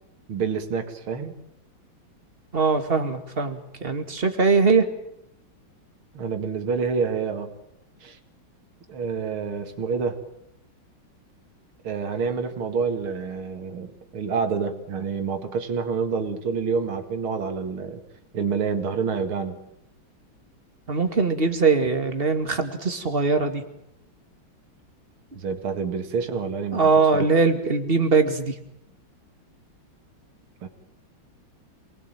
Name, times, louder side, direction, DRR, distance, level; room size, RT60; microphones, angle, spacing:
voice 1, 0.3-1.3 6.1-7.5 8.0-8.2 8.9-10.2 11.8-18.0 18.3-19.6 25.3-26.9 30.6-30.7, right 5 dB, 85° right, 7 dB, 2.8 m, -28 dB
voice 2, 2.5-4.9 20.9-23.6 26.7-28.5, right 4 dB, 25° right, 7 dB, 2.5 m, -21 dB
27.5 x 20.0 x 9.0 m, 0.81 s
omnidirectional pair, 2.2 m